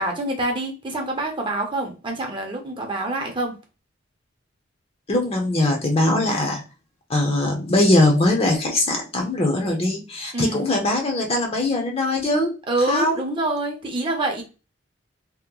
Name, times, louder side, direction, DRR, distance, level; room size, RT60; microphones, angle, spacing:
voice 1, 0.0-3.5 10.3-10.6 12.7-14.4, right 2 dB, 25° right, 2 dB, 0.7 m, -26 dB
voice 2, 5.1-6.6 7.1-12.5 12.9-13.2, left 2 dB, 30° left, 2 dB, 0.6 m, -21 dB
2.9 x 2.1 x 3.7 m, 0.32 s
head